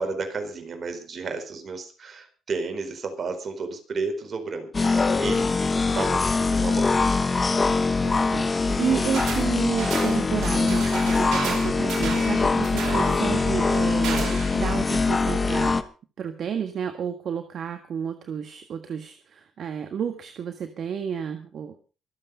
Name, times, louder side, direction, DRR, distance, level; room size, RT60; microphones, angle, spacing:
voice 1, 0.0-5.5 5.9-7.2 8.7-8.8, right 4 dB, 45° right, 6 dB, 4.6 m, -32 dB
sound 1, 4.7-15.8, left 4 dB, 30° left, 1.2 m, -23 dB
voice 2, 8.0-15.8 16.2-21.8, right 7 dB, 60° right, 7 dB, 1.6 m, -31 dB
sound 2, 9.1-9.5 9.8-14.6, right 7 dB, 75° right, 4.9 m, -34 dB
24.5 x 8.3 x 5.2 m, 0.36 s
cardioid pair, 90°, 0 cm